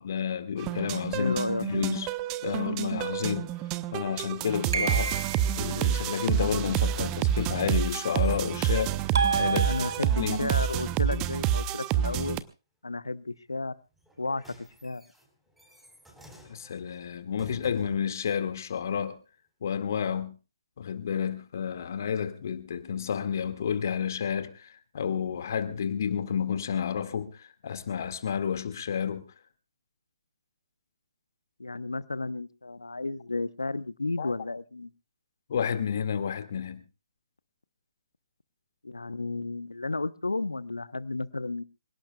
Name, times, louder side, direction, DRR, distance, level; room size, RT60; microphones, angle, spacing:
voice 1, 0.0-2.1 2.4-3.5 3.9-5.1 5.6-9.8 10.2-10.4 16.5-19.2 19.6-20.3 20.8-29.2 34.2-34.3 35.5-36.8, left 7 dB, 50° left, 2.1 m, -30 dB
sound 1, 0.6-12.4, right 10 dB, 20° right, 0.8 m, -29 dB
voice 2, 1.2-1.7 9.6-12.4 12.8-13.8 14.2-15.0 31.6-34.9 38.8-41.6, left 3 dB, 75° left, 0.8 m, -32 dB
sound 2, 4.7-5.6 9.1-10.4, right 5 dB, 60° right, 1.8 m, -29 dB
sound 3, 6.7-10.6 14.0-18.1 18.9-19.0, right 1 dB, 5° right, 4.2 m, -52 dB
26.5 x 17.5 x 2.4 m
figure-of-eight pair, 135°, 2 cm